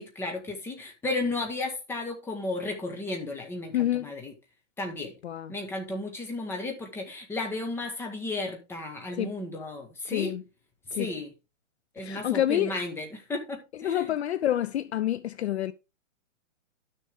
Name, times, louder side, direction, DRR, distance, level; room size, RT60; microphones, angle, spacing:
voice 1, 0.0-4.3 4.8-5.1 5.5-10.3 10.9-11.3 11.9-14.1, left 2 dB, 5° left, 1.3 m, -34 dB
voice 2, 3.7-4.1 5.2-5.5 9.1-9.4 10.1-10.4 10.9-11.1 12.0-12.7 13.8-15.7, left 12 dB, 55° left, 0.6 m, -28 dB
11.5 x 6.6 x 3.6 m
hypercardioid pair, 155°, 40 cm